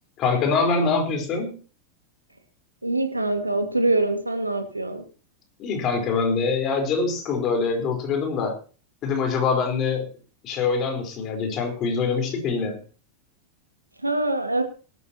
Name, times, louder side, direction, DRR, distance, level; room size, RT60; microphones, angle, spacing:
voice 1, 0.2-1.6 5.6-8.5 9.0-10.1 10.4-12.8, left 4 dB, 35° left, 3 dB, 4.4 m, -24 dB
voice 2, 2.8-5.0 14.0-14.6, right 2 dB, 85° right, 6 dB, 2.0 m, -24 dB
18.5 x 13.0 x 3.0 m, 0.37 s
figure-of-eight pair, 90°, 0 cm